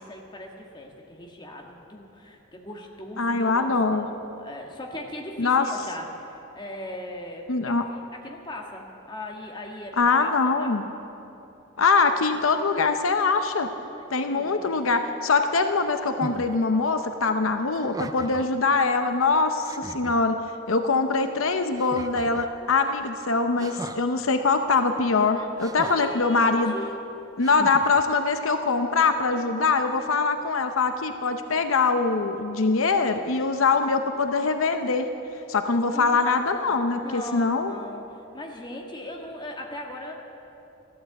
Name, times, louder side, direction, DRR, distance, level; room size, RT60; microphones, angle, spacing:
voice 1, 0.0-10.8 13.9-14.8 18.1-18.4 25.8-26.9 35.9-36.4 36.6-36.8 37.0-40.1, left 1 dB, 20° left, 0 dB, 1.6 m, -39 dB
voice 2, 3.2-4.1 5.4-5.7 7.5-7.8 10.0-10.9 11.8-13.7 14.1-20.4 20.7-26.7 27.4-35.1 35.5-37.7, left 4 dB, 75° left, 7 dB, 0.7 m, -23 dB
sound 1, 16.2-16.5 17.7-18.6 19.2-19.3 19.6-20.2 21.7-22.5 23.6-24.0 25.6-26.3 27.4-28.0, right 2 dB, 15° right, 0.3 m, -37 dB
14.5 x 12.5 x 7.8 m, 2.9 s
head